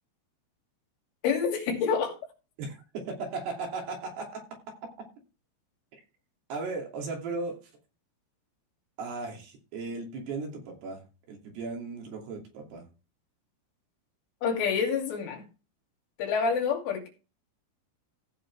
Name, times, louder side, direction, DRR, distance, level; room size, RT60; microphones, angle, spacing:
voice 1, 1.2-2.2 14.4-15.4 16.2-17.1, left 6 dB, 70° left, 2 dB, 5.0 m, -27 dB
voice 2, 2.6-4.4 5.9-6.0 6.5-7.6 9.0-11.0 11.3-12.8, right 3 dB, 60° right, 1 dB, 4.5 m, -36 dB
15.5 x 7.4 x 3.4 m, 0.31 s
omnidirectional pair, 5.8 m